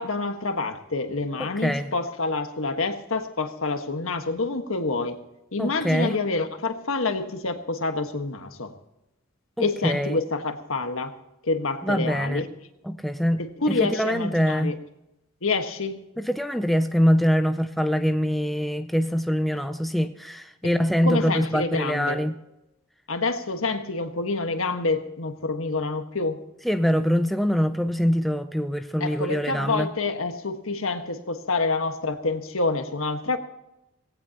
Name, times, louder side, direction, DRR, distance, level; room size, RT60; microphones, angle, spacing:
voice 1, 0.0-5.2 5.5-8.7 9.6-11.1 11.4-12.5 13.4-14.7 15.4-16.0 20.6-20.7 21.0-22.2 23.1-26.4 29.0-33.4, left 3 dB, 75° left, 6 dB, 1.5 m, -27 dB
voice 2, 1.4-1.9 5.6-6.2 9.6-10.2 11.8-12.4 12.8-14.7 16.2-22.3 26.6-29.9, equal, ahead, 8 dB, 0.5 m, -24 dB
18.5 x 17.0 x 2.9 m, 0.93 s
head